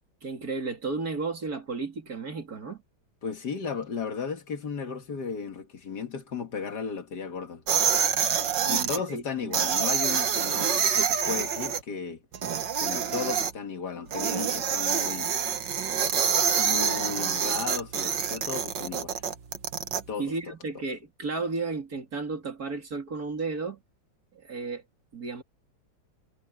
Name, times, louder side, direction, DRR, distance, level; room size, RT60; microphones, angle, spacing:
voice 1, 0.2-2.8 8.6-9.6 20.2-23.8 24.3-24.8 25.1-25.4, right 4 dB, 55° right, 3.4 m, -33 dB
voice 2, 3.2-7.6 8.7-12.2 12.8-15.3 16.6-19.2 20.1-20.5, left 5 dB, 65° left, 2.3 m, -35 dB
sound 1, 7.7-9.0 9.5-11.8 12.3-13.5 14.1-20.0, right 7 dB, 80° right, 2.0 m, -26 dB
omnidirectional pair, 1.9 m